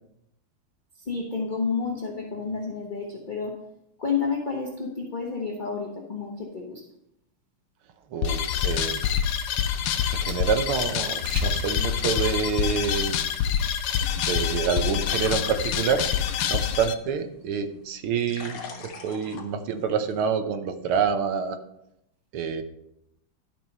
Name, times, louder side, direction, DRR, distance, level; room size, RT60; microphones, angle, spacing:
voice 1, 1.0-3.5 4.0-6.8, left 5 dB, 30° left, -1 dB, 1.0 m, -30 dB
voice 2, 8.1-9.1 10.1-13.2 14.2-16.0 16.4-21.6 22.3-22.6, right 7 dB, 75° right, 8 dB, 1.7 m, -27 dB
sound 1, 8.2-16.9, left 9 dB, 90° left, 1.6 m, -26 dB
sound 2, 9.8-13.3 13.9-14.3 14.5-15.0 15.2-15.5, right 3 dB, 40° right, 1.3 m, -38 dB
sound 3, 14.9-20.3, left 4 dB, 55° left, 1.9 m, -44 dB
12.0 x 5.4 x 5.4 m, 0.81 s
omnidirectional pair, 2.4 m